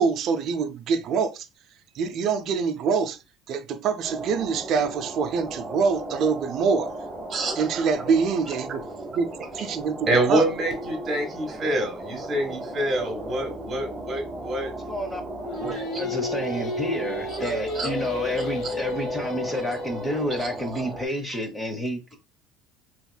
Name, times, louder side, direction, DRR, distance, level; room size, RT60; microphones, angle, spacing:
voice 1, 0.0-1.5 1.9-3.2 3.5-6.9 7.6-8.8 9.1-10.5, right 5 dB, 50° right, 0.4 m, -25 dB
sound 1, 4.0-21.1, right 1 dB, 10° right, 1.0 m, -36 dB
voice 2, 7.3-7.8 10.1-14.7 15.5-16.0 17.7-17.9, right 1 dB, 30° right, 1.4 m, -26 dB
voice 3, 14.9-15.2 15.6-22.2, equal, 10° left, 0.7 m, -30 dB
Singing, 15.4-20.6, left 2 dB, 65° left, 0.8 m, -32 dB
4.0 x 2.9 x 2.2 m
cardioid pair, 145°, 0 cm